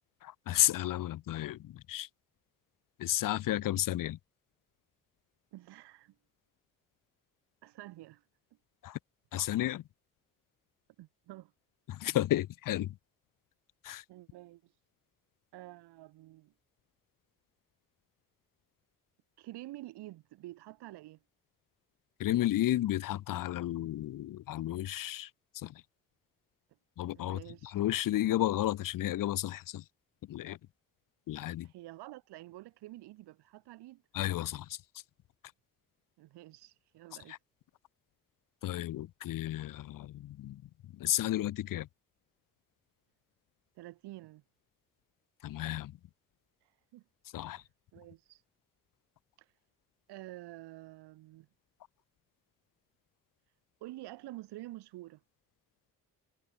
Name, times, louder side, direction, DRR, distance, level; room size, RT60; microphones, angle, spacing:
voice 1, 0.2-2.1 3.0-4.2 8.8-9.0 9.3-9.8 11.9-13.0 13.8-14.0 22.2-25.3 25.5-25.8 27.0-29.8 30.3-30.6 31.3-31.7 34.1-34.8 37.3-37.4 38.6-41.9 45.4-45.9 47.3-47.6, left 14 dB, 50° left, 0.7 m, -32 dB
voice 2, 5.5-6.2 7.6-8.2 11.0-11.5 14.1-14.7 15.5-16.5 19.4-21.2 27.1-27.8 31.6-34.0 36.2-37.4 43.7-44.4 46.9-47.0 47.4-47.6 47.9-48.4 49.4-49.5 50.1-51.5 53.8-55.2, right 17 dB, 70° right, 1.4 m, -49 dB
hypercardioid pair, 40°, 42 cm